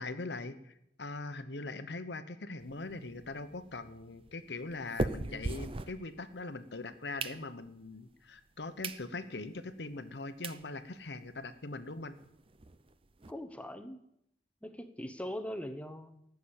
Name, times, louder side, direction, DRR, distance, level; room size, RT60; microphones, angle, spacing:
voice 1, 0.0-12.2, left 3 dB, 75° left, 11 dB, 1.0 m, -41 dB
sound 1, 2.6-6.5 6.9-7.9 8.4-8.5 8.8-9.0 9.5-9.6 10.1-10.2 10.4-10.6 11.1-11.2 11.3-11.5 11.7-11.8 12.2-13.3, right 2 dB, 30° right, 0.6 m, -40 dB
voice 2, 13.3-14.0 14.6-16.3, equal, 5° left, 7 dB, 1.0 m, -41 dB
14.5 x 7.0 x 8.9 m, 0.76 s
head